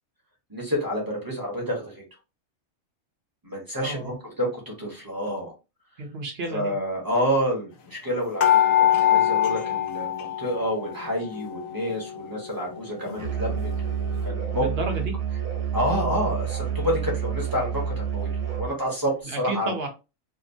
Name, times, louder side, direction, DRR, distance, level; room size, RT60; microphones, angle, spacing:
voice 1, 0.5-2.0 3.4-5.5 6.5-13.7 14.2-14.7 15.7-18.3 18.6-19.7, equal, 20° right, -1 dB, 0.8 m, -28 dB
voice 2, 3.8-4.1 6.0-6.8 14.5-15.1 19.2-19.9, right 2 dB, 55° right, 3 dB, 0.9 m, -31 dB
sound 1, 8.4-10.9 11.2-12.2 12.7-12.8 13.1-13.2, left 11 dB, 75° left, 1.0 m, -23 dB
Musical instrument, 13.2-18.8, right 7 dB, 75° right, 1.0 m, -29 dB
2.8 x 2.0 x 2.6 m, 0.28 s
omnidirectional pair, 1.4 m